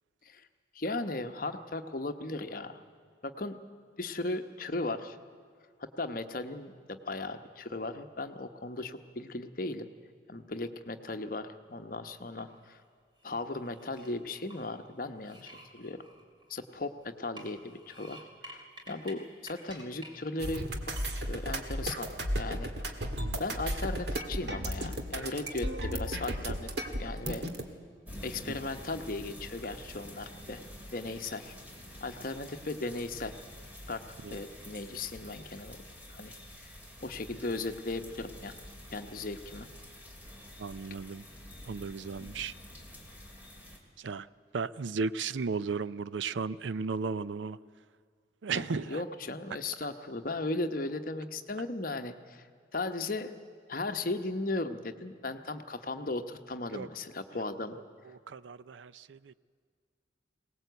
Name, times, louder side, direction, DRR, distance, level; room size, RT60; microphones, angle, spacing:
voice 1, 0.7-2.8 3.2-3.6 4.0-5.2 5.8-9.9 10.3-12.8 13.2-16.0 16.5-18.2 18.5-20.6 21.3-22.7 23.4-27.4 28.2-30.6 30.9-31.5 32.0-33.3 33.9-34.0 34.3-35.8 36.1-36.3 36.6-38.6 38.9-39.7 42.2-42.3 48.5-52.4 52.7-53.4 53.7-57.7, left 2 dB, 45° left, 7 dB, 1.0 m, -37 dB
sound 1, 12.1-12.8 13.2-14.7 15.2-16.8 17.2-19.1 19.4-20.1 20.5-20.6 21.0-21.5, right 1 dB, 25° right, 2.9 m, -51 dB
sound 2, 20.4-27.6, right 1 dB, 60° right, 1.8 m, -34 dB
sound 3, 28.1-43.8, left 1 dB, 10° right, 2.5 m, -48 dB
voice 2, 40.6-41.2 41.7-42.5 44.0-44.3 44.5-47.6 48.4-49.0 56.7-56.9 58.3-59.3, right 5 dB, 80° right, 17 dB, 0.5 m, -35 dB
22.0 x 18.5 x 8.1 m, 2.1 s
head